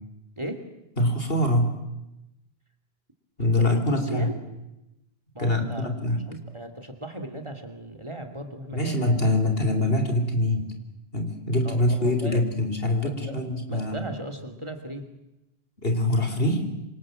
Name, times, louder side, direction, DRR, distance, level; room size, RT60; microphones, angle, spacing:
voice 1, 1.0-1.7 3.4-4.3 5.4-6.2 8.7-10.7 11.1-14.1 15.8-16.7, left 1 dB, 65° left, 6 dB, 4.0 m, -24 dB
voice 2, 3.6-4.4 5.3-5.9 6.3-9.0 11.6-12.4 13.0-13.4 13.7-15.1, right 1 dB, 30° right, 5 dB, 2.8 m, -37 dB
26.5 x 26.0 x 7.6 m, 0.92 s
omnidirectional pair, 1.0 m